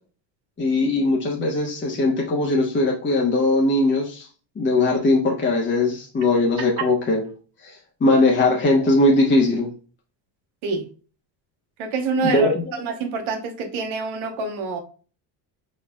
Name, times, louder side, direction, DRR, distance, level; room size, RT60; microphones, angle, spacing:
voice 1, 0.6-4.3 4.6-7.2 7.6-9.7 12.2-12.5, left 2 dB, 25° left, -1 dB, 1.1 m, -20 dB
voice 2, 11.8-14.8, right 4 dB, 75° right, 3 dB, 1.2 m, -26 dB
4.6 x 4.4 x 2.3 m, 0.38 s
cardioid pair, 105°, 48 cm